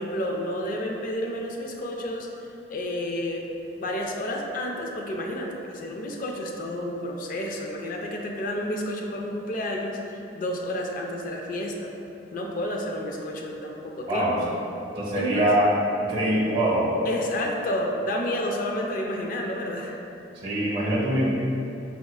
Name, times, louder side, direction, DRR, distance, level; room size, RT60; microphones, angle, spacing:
voice 1, 0.0-2.3 2.7-3.5 3.8-11.9 12.3-14.4 15.1-15.5 17.1-20.0, left 1 dB, 45° left, 1 dB, 0.3 m, -30 dB
voice 2, 15.0-15.7 16.0-16.8 20.4-21.2, right 1 dB, 25° right, -7 dB, 0.7 m, -23 dB
4.8 x 2.3 x 2.3 m, 2.8 s
head